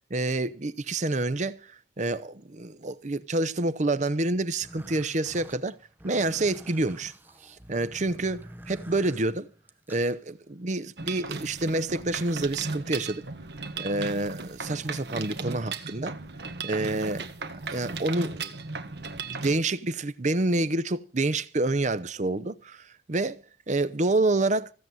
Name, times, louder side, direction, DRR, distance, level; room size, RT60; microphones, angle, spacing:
voice 1, 0.1-5.8 6.0-7.1 7.4-9.5 9.9-13.2 13.8-16.1 16.6-17.2 17.7-18.5 19.0-23.4 23.7-24.7, right 2 dB, 40° right, 0.7 m, -28 dB
sound 1, 4.6-10.1, right 1 dB, 10° right, 0.8 m, -47 dB
Mechanisms, 11.0-19.6, right 4 dB, 65° right, 1.6 m, -36 dB
16.0 x 7.8 x 9.1 m
head